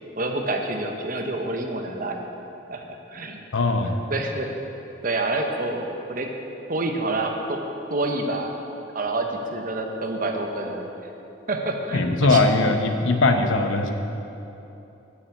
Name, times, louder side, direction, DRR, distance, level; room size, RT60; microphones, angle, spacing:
voice 1, 0.2-2.2 2.7-3.4 3.8-4.5 5.0-5.8 6.1-6.3 6.7-7.6 7.9-8.5 8.9-10.9 11.5-12.4, right 2 dB, 45° right, 3 dB, 0.9 m, -27 dB
voice 2, 3.5-4.0 11.9-13.9, left 2 dB, 85° left, 6 dB, 0.8 m, -20 dB
9.4 x 6.0 x 8.4 m, 2.9 s
head